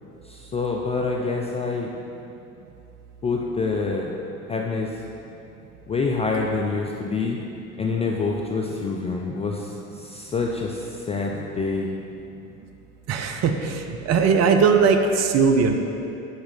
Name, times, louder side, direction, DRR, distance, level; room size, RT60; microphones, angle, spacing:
voice 1, 0.2-1.9 3.2-4.1 4.5-5.0 5.9-7.4 7.8-11.9, left 4 dB, 15° left, -1 dB, 0.3 m, -26 dB
voice 2, 13.1-15.8, right 5 dB, 40° right, 5 dB, 0.6 m, -19 dB
5.6 x 4.3 x 5.6 m, 2.7 s
figure-of-eight pair, 65°, 42 cm